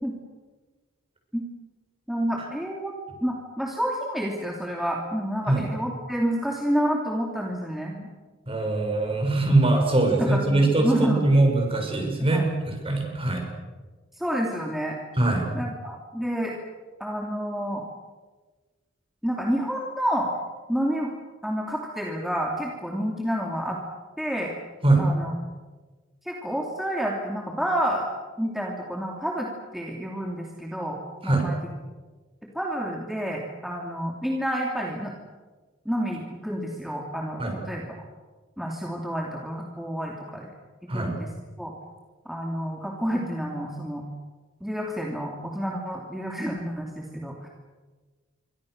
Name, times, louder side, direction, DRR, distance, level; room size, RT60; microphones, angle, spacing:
voice 1, 2.1-2.9 3.2-8.1 10.1-11.2 12.3-12.5 14.2-15.0 15.5-16.5 17.0-17.8 19.2-20.3 20.7-21.1 21.4-23.8 24.2-24.5 25.0-25.3 26.3-28.0 28.4-31.6 32.5-35.1 35.8-38.0 38.6-40.5 40.9-41.3 41.6-41.7 42.2-44.1 44.6-47.5, equal, ahead, -1 dB, 2.7 m, -29 dB
voice 2, 8.5-13.4 15.2-15.5 24.8-25.0 31.2-31.5 37.4-37.6 40.9-41.1, right 2 dB, 30° right, 2 dB, 6.6 m, -22 dB
28.0 x 24.5 x 6.6 m, 1.3 s
head